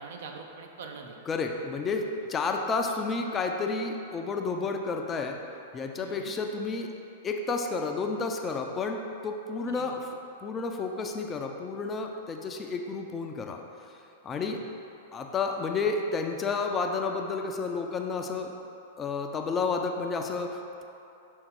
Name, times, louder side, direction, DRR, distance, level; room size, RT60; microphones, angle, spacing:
voice 1, 0.0-1.2 6.0-6.3 9.7-10.0 14.4-14.6, right 5 dB, 55° right, 2 dB, 0.6 m, -43 dB
voice 2, 1.3-5.4 5.7-6.9 7.2-10.1 10.4-13.6 14.2-14.6 15.1-18.5 19.0-20.8, left 4 dB, 20° left, 3 dB, 0.4 m, -31 dB
6.4 x 3.5 x 4.6 m, 2.8 s
figure-of-eight pair, 100°, 0 cm